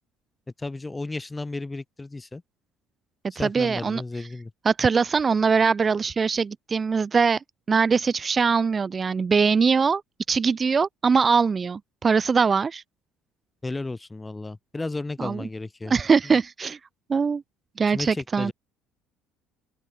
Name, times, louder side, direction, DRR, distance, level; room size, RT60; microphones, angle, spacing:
voice 1, 0.6-2.4 3.3-4.5 13.6-15.9 16.2-16.4 17.9-18.5, left 2 dB, 15° left, 1.7 m, -33 dB
voice 2, 3.4-4.0 4.6-10.0 10.3-12.8 15.2-15.5 15.8-16.8 17.1-17.4 17.8-18.5, right 5 dB, 30° right, 0.5 m, -22 dB
open air
hypercardioid pair, 65°, 0 cm